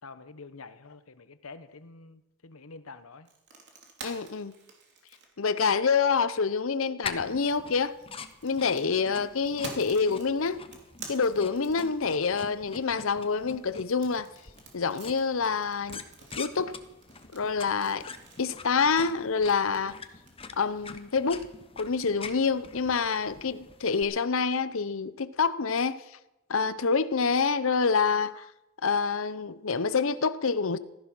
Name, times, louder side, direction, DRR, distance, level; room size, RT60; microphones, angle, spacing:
voice 1, 0.0-3.3, left 4 dB, 90° left, 1.1 m, -47 dB
sound 1, 3.2-6.2 7.6-12.4 13.8-20.3, right 4 dB, 55° right, 3.0 m, -48 dB
voice 2, 4.0-4.5 5.4-7.9 8.4-10.6 11.1-14.3 14.7-16.0 16.4-16.7 17.3-18.1 18.4-20.0 20.6-21.4 21.8-26.0 26.5-28.4 28.8-30.8, left 5 dB, 70° left, 0.7 m, -27 dB
sound 2, 7.0-24.0, left 4 dB, 25° left, 1.0 m, -45 dB
15.5 x 14.0 x 6.1 m
head